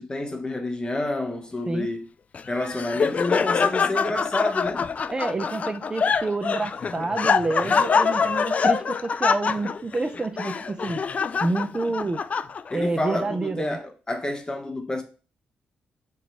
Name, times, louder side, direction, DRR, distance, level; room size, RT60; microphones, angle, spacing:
voice 1, 0.0-2.1 2.5-4.9 12.7-15.0, left 2 dB, 25° left, 1.0 m, -29 dB
Laughter, 2.3-12.9, left 5 dB, 40° left, 0.3 m, -25 dB
voice 2, 5.1-11.0 11.4-12.2 12.7-13.8, right 3 dB, 25° right, 0.4 m, -28 dB
3.9 x 3.0 x 4.4 m
cardioid pair, 75°, 4 cm